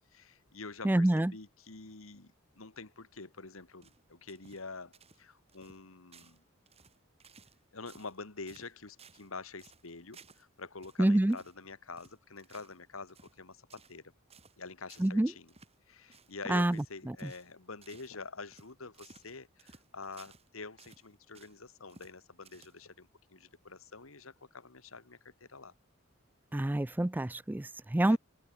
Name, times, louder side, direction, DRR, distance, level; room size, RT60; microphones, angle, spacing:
voice 1, 0.1-6.4 7.7-14.0 14.6-15.5 15.9-25.7 28.1-28.2, left 4 dB, 80° left, 2.0 m, -47 dB
voice 2, 0.8-1.3 11.0-11.4 15.0-15.3 16.5-17.3 26.5-28.2, right 1 dB, 10° right, 0.3 m, -27 dB
sound 1, 3.8-4.7 4.9-5.2 5.5-5.8 6.1-6.4 6.7-7.6 7.9-8.2 8.5-9.3 9.6-10.5 10.8-11.0 11.3-11.6 12.0-12.8 13.1-13.4 13.7-14.0 14.3-14.6 14.9-15.2 15.5-15.8 16.1-16.3 16.7-16.9 17.2-17.5 17.8-18.1 18.5-20.5 20.8-21.6 21.9-22.2 22.4-23.0, right 4 dB, 30° right, 7.8 m, -59 dB
open air
head